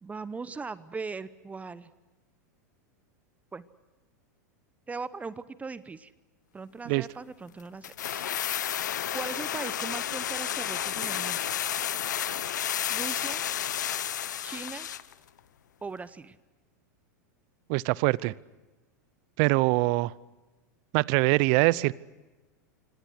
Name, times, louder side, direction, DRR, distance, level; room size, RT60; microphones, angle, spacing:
voice 1, 0.0-1.9 3.5-3.6 4.9-6.1 6.5-8.2 9.1-11.4 12.9-13.4 14.4-14.9 15.8-16.4, right 4 dB, 15° right, 16 dB, 0.8 m, -39 dB
sound 1, 7.8-15.1 15.4-15.5, left 10 dB, 80° left, 1.0 m, -31 dB
voice 2, 17.7-18.3 19.4-20.1 20.9-21.9, right 22 dB, 55° right, 22 dB, 0.7 m, -23 dB
26.5 x 25.5 x 6.3 m, 1.2 s
hypercardioid pair, 100°, 10 cm